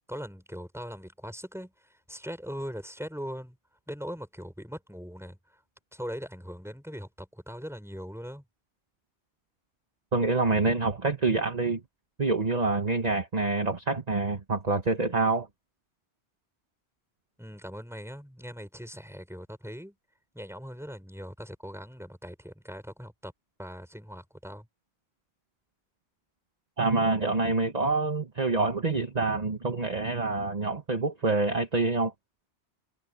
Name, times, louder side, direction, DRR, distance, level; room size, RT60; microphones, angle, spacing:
voice 1, 0.1-3.6 3.9-5.4 5.9-8.4 17.4-19.9 20.3-23.3 23.6-24.7, equal, ahead, 5.3 m, -40 dB
voice 2, 10.1-11.8 12.2-15.5 26.8-32.1, right 3 dB, 40° right, 1.4 m, -26 dB
omnidirectional pair, 1.1 m